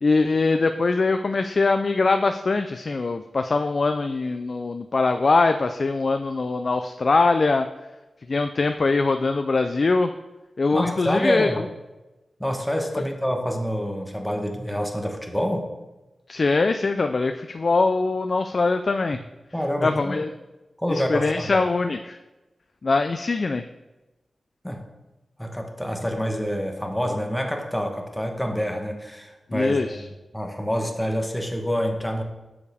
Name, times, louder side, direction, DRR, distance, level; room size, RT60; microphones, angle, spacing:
voice 1, 0.0-7.7 8.3-10.1 10.6-11.7 12.9-13.0 16.3-19.2 19.8-20.3 20.9-22.2 22.8-23.6 29.5-30.0, left 3 dB, 45° left, 7 dB, 0.4 m, -22 dB
voice 2, 10.7-11.6 12.4-15.7 19.5-20.2 20.8-21.5 24.6-24.8 25.4-30.0 30.3-32.2, equal, 5° left, 3 dB, 1.2 m, -27 dB
11.5 x 7.1 x 3.5 m, 1.1 s
wide cardioid pair, 110°, 0 cm